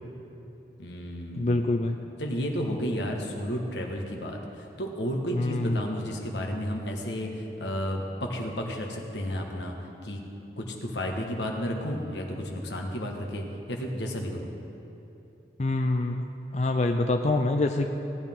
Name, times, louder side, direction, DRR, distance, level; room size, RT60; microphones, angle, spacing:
voice 1, 0.8-1.5 2.2-9.7 10.0-10.2 10.6-14.5, equal, 85° left, 1 dB, 1.5 m, -32 dB
voice 2, 1.4-2.0 5.3-5.8 15.6-16.2 16.5-17.9, left 2 dB, 40° left, 5 dB, 0.4 m, -25 dB
18.0 x 9.9 x 3.7 m, 3.0 s
head